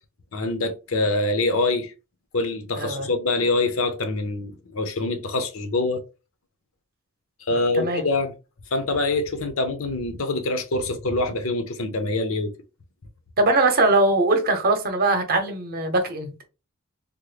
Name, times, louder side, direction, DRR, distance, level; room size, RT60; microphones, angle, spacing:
voice 1, 0.3-1.9 2.3-6.0 7.5-8.3 8.7-12.5, left 2 dB, 70° left, 0.7 m, -25 dB
voice 2, 2.8-3.1 7.5-8.0 13.4-16.4, right 2 dB, 45° right, 0.8 m, -21 dB
3.6 x 2.0 x 3.2 m
head